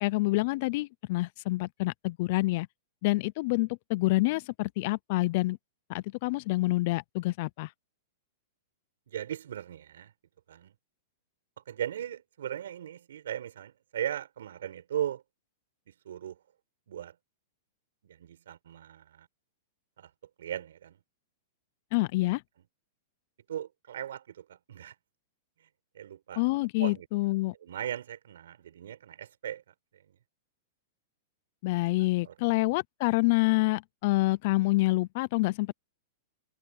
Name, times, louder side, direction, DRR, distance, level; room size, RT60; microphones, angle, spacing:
voice 1, 0.0-2.7 3.0-5.6 5.9-7.7 21.9-22.4 26.4-27.5 31.6-35.7, left 21 dB, 50° left, 0.4 m, -27 dB
voice 2, 9.1-10.1 10.5-10.7 11.6-15.2 15.9-16.4 16.9-17.2 18.0-19.3 20.0-20.1 20.4-21.0 23.5-24.9 25.6-25.7 25.9-26.4 26.8-27.1 27.6-29.6 29.9-30.0 32.2-32.3, right 10 dB, 85° right, 5.5 m, -38 dB
supercardioid pair, 150°, 0 cm